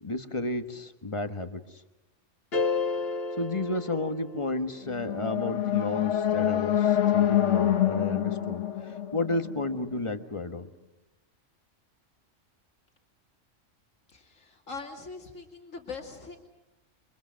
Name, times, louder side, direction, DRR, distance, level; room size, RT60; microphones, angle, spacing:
voice 1, 0.0-1.6 3.4-10.7, left 2 dB, 25° left, 9 dB, 1.4 m, -32 dB
sound 1, 2.5-4.8, left 4 dB, 50° left, 1.9 m, -31 dB
sound 2, 4.9-10.0, left 11 dB, 70° left, 1.4 m, -26 dB
voice 2, 14.1-16.4, left 4 dB, 90° left, 2 dB, 2.8 m, -42 dB
29.0 x 24.0 x 6.4 m, 0.95 s
omnidirectional pair, 1.3 m